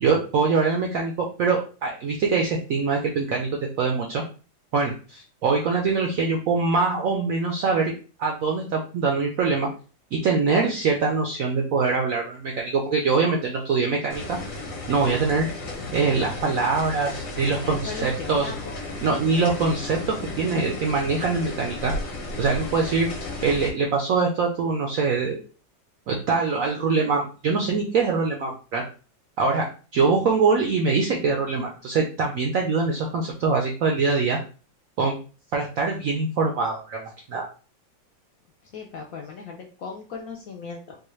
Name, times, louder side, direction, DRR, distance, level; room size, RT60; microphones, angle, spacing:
voice 1, 0.0-3.5 3.8-4.2 4.7-7.9 8.2-9.7 10.1-14.4 14.9-15.5 15.9-18.5 19.0-21.9 22.4-23.1 23.4-25.4 26.1-28.8 29.4-29.7 29.9-34.4 35.0-35.2 35.5-37.0 37.3-37.5, right 4 dB, 75° right, 1 dB, 0.7 m, -23 dB
sound 1, 14.1-23.7, left 2 dB, 55° left, 1.1 m, -34 dB
voice 2, 17.6-18.7 19.3-19.4 32.9-33.0 38.7-41.0, left 5 dB, 70° left, 0 dB, 0.8 m, -37 dB
3.9 x 2.3 x 3.1 m, 0.37 s
omnidirectional pair, 2.0 m